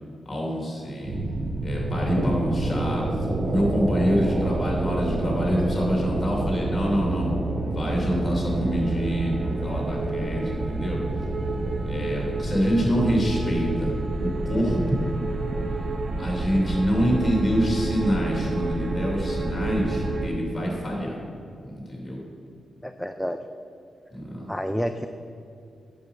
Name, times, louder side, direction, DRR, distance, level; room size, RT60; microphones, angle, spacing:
voice 1, 0.3-1.2 1.6-3.0 3.4-7.3 7.6-11.0 11.9-13.9 14.2-15.0 16.2-21.2 21.6-22.2 24.1-24.5, equal, 20° left, -1 dB, 2.7 m, -26 dB
sound 1, 1.1-20.3, right 2 dB, 40° right, 0.7 m, -28 dB
voice 2, 22.8-23.4 24.5-25.1, equal, ahead, 7 dB, 0.3 m, -29 dB
7.9 x 6.7 x 6.9 m, 2.4 s
wide cardioid pair, 135°, 0 cm